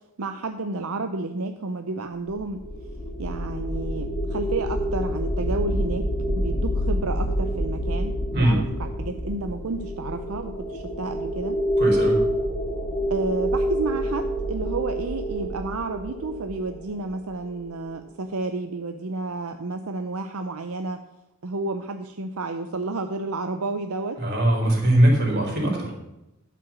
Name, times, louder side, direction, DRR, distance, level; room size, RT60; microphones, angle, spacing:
voice 1, 0.2-2.6 3.2-6.1 6.4-11.6 13.1-21.0 21.4-24.2, right 3 dB, 75° right, 6 dB, 0.7 m, -31 dB
sound 1, 2.3-17.5, equal, 35° left, 2.2 m, -27 dB
voice 2, 11.8-12.2 24.2-25.9, right 1 dB, 45° right, -1 dB, 3.9 m, -20 dB
12.0 x 5.9 x 7.2 m, 0.93 s
head